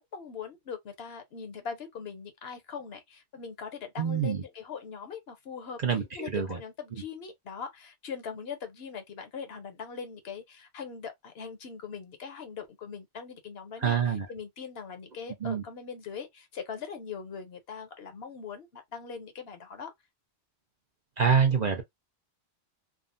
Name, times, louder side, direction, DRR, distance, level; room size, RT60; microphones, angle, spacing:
voice 1, 0.0-5.8 6.1-19.9, left 6 dB, 65° left, 1.0 m, -41 dB
voice 2, 4.0-4.4 5.8-6.6 6.9-7.0 13.8-14.3 15.4-15.6 21.2-21.8, right 6 dB, 50° right, 0.6 m, -26 dB
3.5 x 2.0 x 2.5 m
omnidirectional pair, 1.1 m